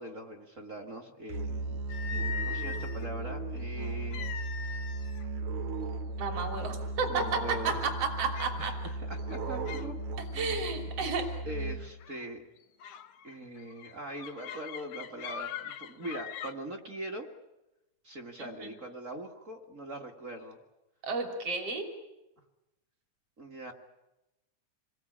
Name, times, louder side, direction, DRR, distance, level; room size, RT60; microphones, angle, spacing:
voice 1, 0.0-1.8 2.5-4.3 7.0-7.8 8.6-8.7 9.1-10.0 10.3-10.7 11.0-11.1 11.5-12.4 13.2-17.3 18.0-20.6 23.4-23.7, right 1 dB, 30° right, 4 dB, 1.7 m, -41 dB
Musical instrument, 1.3-12.1, right 2 dB, 80° right, 3.3 m, -36 dB
sound 1, 1.9-3.1 4.1-5.3 5.6-5.8 6.5-6.6 7.1-7.5 8.3-8.6 9.2-9.9 10.2-10.5 12.0-12.2 12.8-16.5, left 8 dB, 85° left, 2.6 m, -41 dB
voice 2, 6.2-8.7 10.3-11.3 18.4-18.7 21.0-21.9, right 4 dB, 50° right, 4 dB, 4.0 m, -32 dB
27.5 x 21.0 x 8.6 m, 0.96 s
omnidirectional pair, 3.4 m